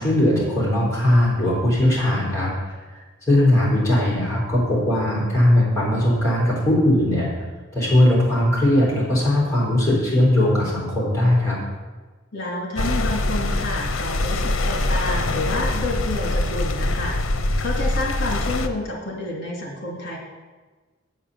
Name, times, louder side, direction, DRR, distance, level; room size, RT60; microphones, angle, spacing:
voice 1, 0.0-2.5 3.3-7.4 7.7-11.6, left 1 dB, 15° left, -6 dB, 3.8 m, -19 dB
voice 2, 12.3-17.2 17.6-20.2, left 2 dB, 55° left, -1 dB, 2.6 m, -29 dB
sound 1, 12.8-18.7, left 2 dB, 75° left, 0.8 m, -23 dB
8.3 x 7.2 x 6.9 m, 1.3 s
head